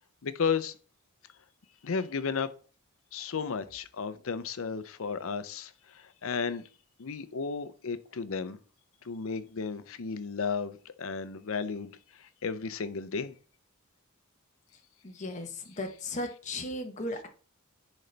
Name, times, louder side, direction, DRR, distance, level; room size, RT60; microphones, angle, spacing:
voice 1, 0.2-0.8 1.8-2.5 3.1-6.6 7.0-8.6 9.0-13.3 15.7-15.8, left 5 dB, 65° left, 0.6 m, -34 dB
voice 2, 15.0-15.5 15.8-17.3, left 1 dB, 35° left, 0.9 m, -36 dB
10.5 x 3.9 x 3.3 m
head